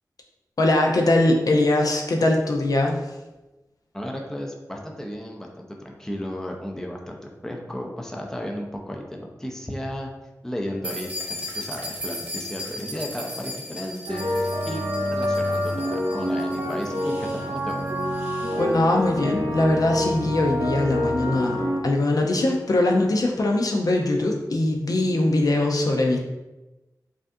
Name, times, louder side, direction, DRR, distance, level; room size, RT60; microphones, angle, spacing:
voice 1, 0.6-3.0 18.6-26.2, left 2 dB, 65° left, 1 dB, 0.5 m, -21 dB
voice 2, 3.9-10.1 10.4-17.8, equal, 5° left, 1 dB, 0.5 m, -34 dB
sound 1, 10.8-18.6, left 1 dB, 15° right, 1.0 m, -37 dB
sound 2, 14.1-21.8, equal, 65° right, 0.7 m, -27 dB
4.9 x 2.5 x 2.6 m, 1.1 s
wide cardioid pair, 85°, 7 cm